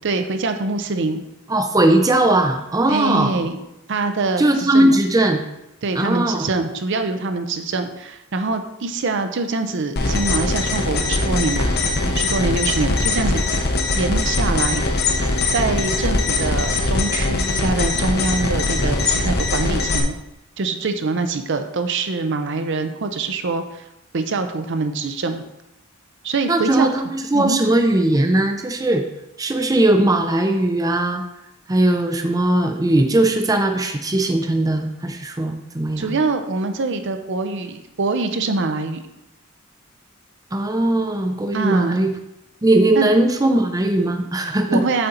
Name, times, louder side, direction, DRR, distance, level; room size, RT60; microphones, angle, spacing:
voice 1, 0.0-1.2 2.9-3.6 3.9-5.0 5.8-11.7 12.1-13.4 13.9-14.8 15.5-20.2 20.6-23.8 24.1-25.4 26.2-26.9 27.3-27.6 36.0-39.0 41.5-42.0 43.0-43.1 44.7-45.1, right 3 dB, 60° right, 7 dB, 0.6 m, -24 dB
voice 2, 1.5-3.5 4.4-5.4 5.9-6.5 26.5-29.0 29.4-31.2 31.7-36.2 40.5-42.1 42.6-44.8, right 1 dB, 20° right, 5 dB, 0.5 m, -19 dB
sound 1, 10.0-20.0, left 2 dB, 50° left, 0.9 m, -21 dB
7.7 x 4.3 x 3.9 m, 0.87 s
head